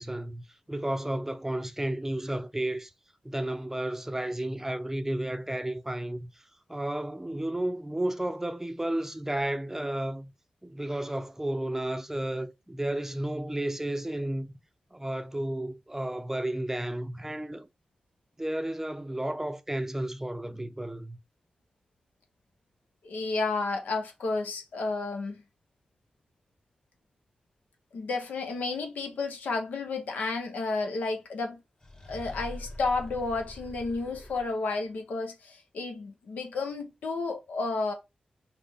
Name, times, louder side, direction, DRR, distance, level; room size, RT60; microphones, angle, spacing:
voice 1, 0.0-2.9 3.2-6.3 6.7-10.3 10.6-14.5 14.9-17.7 18.4-21.2, right 1 dB, 15° right, 0.5 m, -32 dB
voice 2, 23.0-25.4 27.9-31.6 32.1-37.9, left 3 dB, 90° left, 0.7 m, -31 dB
sound 1, 31.8-34.8, left 1 dB, 30° left, 1.0 m, -44 dB
4.0 x 2.1 x 3.4 m
cardioid pair, 45°, 3 cm